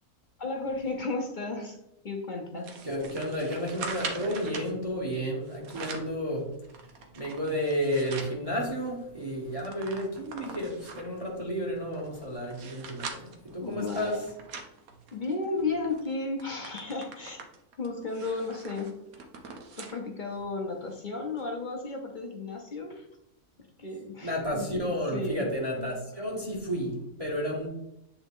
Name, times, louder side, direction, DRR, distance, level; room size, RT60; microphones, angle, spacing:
voice 1, 0.4-1.8 2.0-2.7 4.3-4.6 13.2-13.4 13.6-14.2 15.1-17.4 17.8-18.9 19.8-23.1 23.8-25.5 25.8-26.3, left 3 dB, 40° left, 1 dB, 0.8 m, -34 dB
sound 1, 2.6-4.7 5.5-6.2 6.6-8.4 8.8-8.9 9.2-11.2 11.8-15.5 15.9-16.1 16.4-20.0 20.4-20.5 21.4-21.5, right 4 dB, 90° right, 1.3 m, -42 dB
voice 2, 2.8-6.5 7.1-14.2 24.2-27.7, equal, 25° right, -2 dB, 1.1 m, -32 dB
8.2 x 3.5 x 3.6 m, 0.84 s
omnidirectional pair, 1.5 m